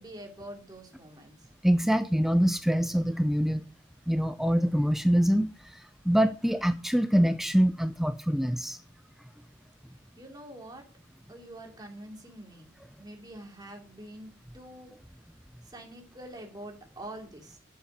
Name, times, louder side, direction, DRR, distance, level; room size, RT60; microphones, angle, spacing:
voice 1, 0.0-1.5 10.2-10.8 11.3-14.9 15.6-17.6, right 1 dB, 20° right, 2.9 m, -45 dB
voice 2, 1.6-3.6 4.1-8.8, equal, ahead, 0.4 m, -25 dB
8.9 x 7.6 x 8.5 m
head